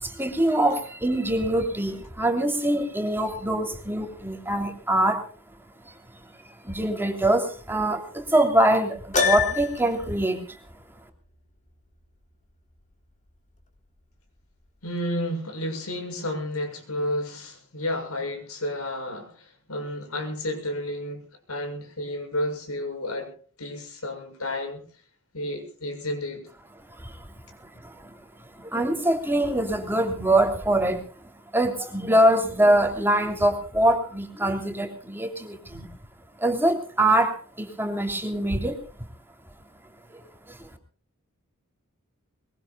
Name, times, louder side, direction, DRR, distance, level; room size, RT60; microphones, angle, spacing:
voice 1, 0.0-5.2 5.8-10.6 26.9-27.3 27.6-28.2 28.5-31.0 31.5-35.9 36.4-38.8 40.1-40.2 40.5-40.7, right 1 dB, 10° right, 3 dB, 3.1 m, -24 dB
Piano, 9.1-10.0, left 6 dB, 35° left, 3.8 m, -24 dB
voice 2, 14.8-23.3 23.6-24.8 25.3-26.4, left 1 dB, 80° left, 5 dB, 7.0 m, -31 dB
23.5 x 23.0 x 2.4 m, 0.43 s
head